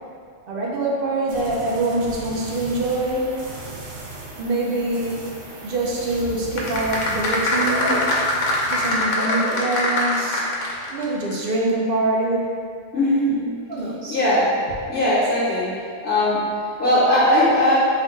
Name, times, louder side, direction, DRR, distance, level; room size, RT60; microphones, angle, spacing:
voice 1, 0.5-3.4 4.4-5.3 5.6-8.1 8.7-10.5 10.9-12.5 13.7-14.2, right 2 dB, 60° right, -3 dB, 0.7 m, -24 dB
sound 1, 1.3-9.5 9.8-10.3, right 2 dB, 80° right, 1.0 m, -38 dB
sound 2, 6.5-11.0 11.3-11.4, left 1 dB, 80° left, 1.0 m, -22 dB
voice 2, 12.9-13.6 14.1-14.5 14.9-15.8 16.0-17.8, left 1 dB, 60° left, -9 dB, 1.1 m, -19 dB
4.7 x 2.2 x 3.2 m, 2.2 s
omnidirectional pair, 1.3 m